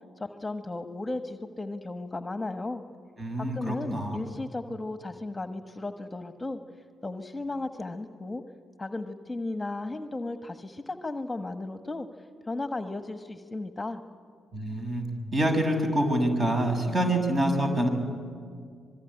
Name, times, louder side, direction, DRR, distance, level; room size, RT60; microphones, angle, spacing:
voice 1, 0.2-2.8 3.4-6.6 7.0-8.4 8.8-12.1 12.5-14.0, left 2 dB, 20° left, 8 dB, 1.4 m, -35 dB
voice 2, 3.2-4.2 14.5-15.0 15.3-17.9, right 1 dB, 35° right, 5 dB, 6.6 m, -26 dB
26.0 x 22.0 x 10.0 m, 2.2 s
hypercardioid pair, 45°, 0 cm